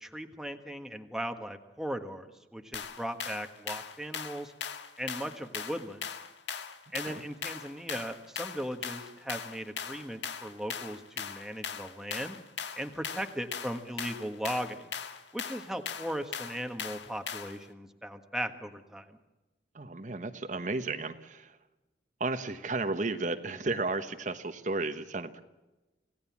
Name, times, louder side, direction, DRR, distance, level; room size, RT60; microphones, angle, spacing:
voice 1, 0.0-4.5 5.0-6.1 6.9-12.4 12.8-14.9 15.3-19.2, equal, 5° right, 5 dB, 1.4 m, -38 dB
sound 1, 2.7-17.6, left 7 dB, 80° left, 1.7 m, -40 dB
voice 2, 19.7-21.6 22.2-25.4, right 3 dB, 45° right, 9 dB, 1.2 m, -33 dB
27.0 x 17.5 x 7.3 m, 1.1 s
head